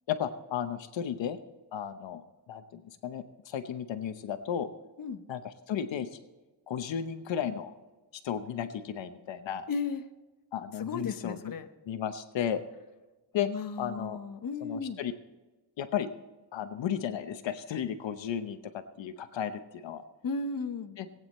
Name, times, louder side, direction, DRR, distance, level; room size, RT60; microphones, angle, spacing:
voice 1, 0.1-1.4 1.7-4.7 5.3-6.2 6.7-7.7 8.2-9.6 10.5-11.5 11.9-12.6 13.3-13.5 13.8-14.2 14.6-15.1 15.8-16.1 16.5-20.0 21.0-21.1, left 9 dB, 75° left, 10 dB, 0.9 m, -34 dB
voice 2, 9.7-10.0 10.8-11.7 13.4-15.0 20.2-21.0, left 4 dB, 50° left, 8 dB, 1.0 m, -35 dB
18.5 x 9.3 x 4.3 m, 1.2 s
wide cardioid pair, 130°, 45 cm